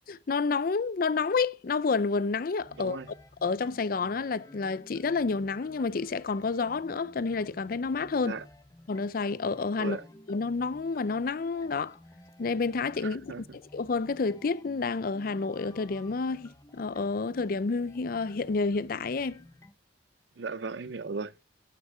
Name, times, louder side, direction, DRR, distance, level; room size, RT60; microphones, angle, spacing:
voice 1, 0.3-3.0 3.4-8.4 8.9-10.0 10.3-12.0 12.4-19.4, left 4 dB, 50° left, 0.5 m, -29 dB
sound 1, 2.6-19.7, left 1 dB, 20° left, 0.8 m, -54 dB
voice 2, 2.7-3.1 8.2-8.5 9.8-10.1 13.0-13.6 20.4-21.4, right 4 dB, 75° right, 0.6 m, -37 dB
12.5 x 6.8 x 3.5 m
head